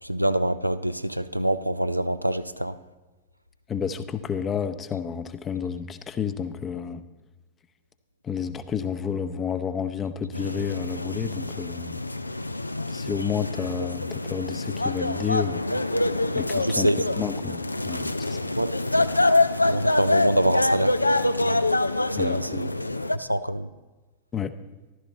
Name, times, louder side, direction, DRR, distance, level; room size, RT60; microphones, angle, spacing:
voice 1, 0.0-2.8 16.6-17.0 18.6-19.1 19.6-21.1 21.3-21.6 22.1-22.8 23.1-23.7, right 1 dB, 90° right, 0.4 m, -25 dB
voice 2, 3.7-7.0 8.2-12.0 12.9-15.6 16.3-16.9 17.2-18.4 22.2-22.7 24.3-24.5, left 7 dB, 25° left, 0.7 m, -30 dB
sound 1, 10.3-23.2, left 2 dB, 85° left, 0.4 m, -26 dB
14.5 x 12.0 x 4.0 m
figure-of-eight pair, 90°, 0 cm